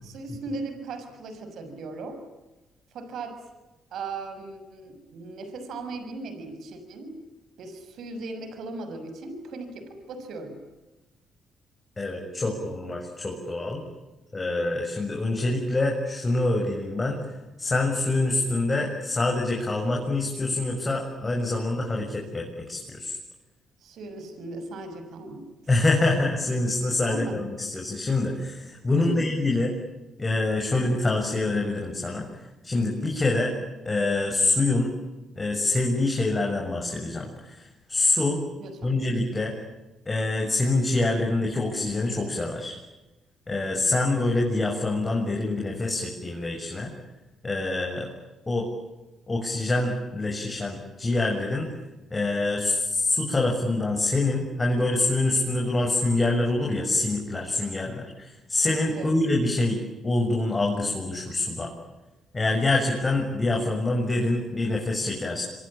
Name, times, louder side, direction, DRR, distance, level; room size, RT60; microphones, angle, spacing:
voice 1, 0.0-2.2 2.9-3.4 3.9-7.1 7.6-10.6 23.8-25.4 27.1-27.4 29.0-29.3 38.6-39.1 59.0-59.1, right 3 dB, 75° right, 8 dB, 6.3 m, -37 dB
voice 2, 12.0-13.8 14.3-17.2 17.6-23.2 25.7-29.7 30.2-32.3 32.6-33.5 33.9-34.9 35.4-38.4 38.8-39.5 40.1-42.8 43.5-46.9 47.4-48.1 48.5-48.7 49.3-51.7 52.1-59.8 60.0-61.7 62.3-65.4, left 2 dB, 25° left, 0 dB, 6.9 m, -25 dB
26.5 x 25.0 x 8.9 m, 1.1 s
cardioid pair, 90°, 0 cm